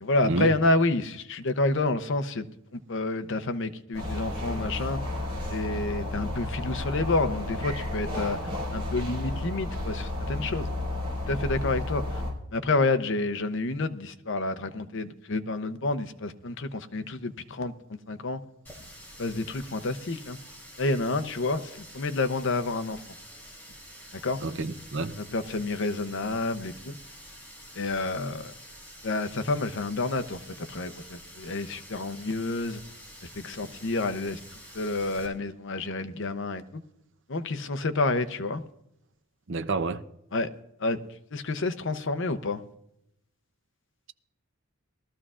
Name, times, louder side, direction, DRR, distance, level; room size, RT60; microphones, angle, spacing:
voice 1, 0.0-2.5 2.7-5.0 5.5-8.4 8.7-10.7 11.3-12.2 12.5-17.7 18.1-18.4 19.2-20.4 20.8-23.0 24.2-24.4 25.2-27.0 27.8-28.5 29.0-30.4 30.7-32.8 33.3-34.4 34.7-36.8 37.3-38.6 40.3-40.5 40.8-41.0 41.3-42.6, left 2 dB, 55° left, 0.7 m, -29 dB
sound 1, 3.9-12.3, left 2 dB, 25° right, 4.8 m, -32 dB
Water tap faucet, 18.6-35.3, equal, 10° left, 3.1 m, -48 dB
voice 2, 24.4-25.2 39.5-40.0, right 3 dB, 55° right, 0.7 m, -29 dB
20.5 x 13.5 x 2.5 m
head